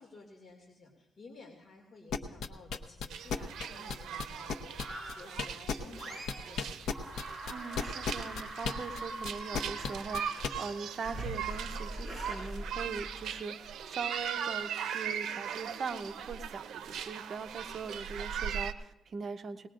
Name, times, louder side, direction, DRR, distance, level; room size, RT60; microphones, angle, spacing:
voice 1, 0.0-6.8, left 3 dB, 40° left, -1 dB, 2.4 m, -53 dB
sound 1, 2.1-6.0 6.3-10.5, left 6 dB, 85° left, 0.8 m, -34 dB
sound 2, 3.1-18.7, right 8 dB, 90° right, 0.6 m, -40 dB
sound 3, 4.8-5.4 5.9-6.6 6.9-13.3, right 1 dB, 5° right, 6.3 m, -43 dB
voice 2, 7.5-19.7, right 5 dB, 50° right, 8 dB, 0.8 m, -41 dB
19.5 x 19.5 x 2.5 m, 1.0 s
cardioid pair, 110°, 0 cm